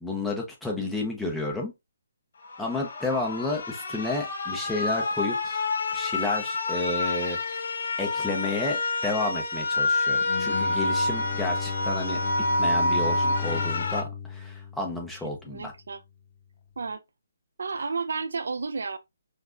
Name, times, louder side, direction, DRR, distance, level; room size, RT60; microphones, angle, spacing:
voice 1, 0.0-1.7 2.6-5.6 5.9-7.6 8.0-12.2 12.6-15.7, left 2 dB, ahead, 0.9 m, -31 dB
sound 1, 2.4-14.0, left 2 dB, 55° left, 1.0 m, -28 dB
Bowed string instrument, 10.2-15.5, left 8 dB, 35° left, 0.4 m, -34 dB
voice 2, 15.5-16.0 16.8-17.0 17.6-19.0, right 4 dB, 75° right, 0.5 m, -32 dB
5.8 x 2.3 x 2.7 m
hypercardioid pair, 165°, 0 cm